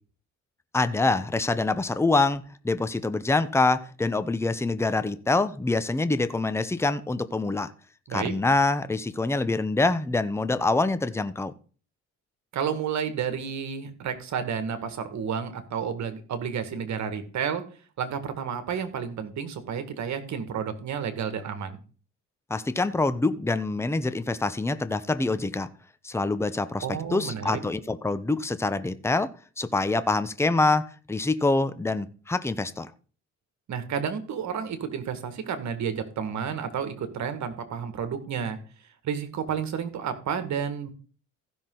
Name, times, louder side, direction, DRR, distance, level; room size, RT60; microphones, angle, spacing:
voice 1, 0.7-7.7 8.1-11.5 22.5-25.7 26.0-26.9 27.1-32.9, left 3 dB, 10° left, 0.8 m, -25 dB
voice 2, 12.5-17.6 18.0-21.8 26.8-27.6 33.7-38.6 39.0-40.9, right 7 dB, 65° right, 1.9 m, -31 dB
15.5 x 6.1 x 3.9 m
cardioid pair, 90°, 30 cm